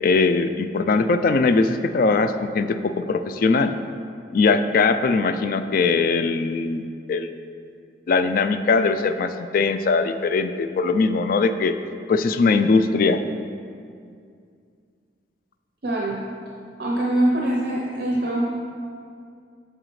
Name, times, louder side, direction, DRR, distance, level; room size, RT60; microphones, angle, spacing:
voice 1, 0.0-3.7 4.3-7.3 8.1-11.8 12.1-13.2, left 4 dB, 50° left, 10 dB, 0.3 m, -20 dB
voice 2, 15.8-16.2 16.8-18.5, right 1 dB, 55° right, -3 dB, 0.8 m, -23 dB
8.9 x 6.6 x 3.1 m, 2.3 s
head